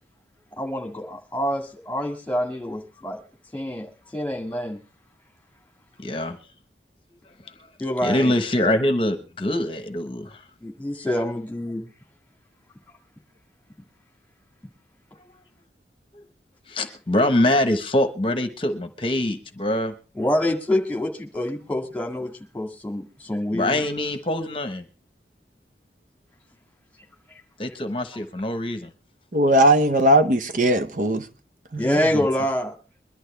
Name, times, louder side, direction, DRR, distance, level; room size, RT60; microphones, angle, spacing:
voice 1, 0.6-3.2 3.5-3.9 4.1-4.8 7.8-8.4 8.6-8.7 10.6-11.8 20.2-23.8 31.8-32.7, left 1 dB, 10° left, 2.0 m, -26 dB
voice 2, 6.0-6.4 8.0-10.4 16.7-19.9 23.5-24.9 27.6-28.9, left 1 dB, 30° left, 1.0 m, -24 dB
voice 3, 29.3-31.3 31.7-32.1, right 1 dB, 45° right, 0.8 m, -19 dB
22.5 x 11.5 x 3.3 m
head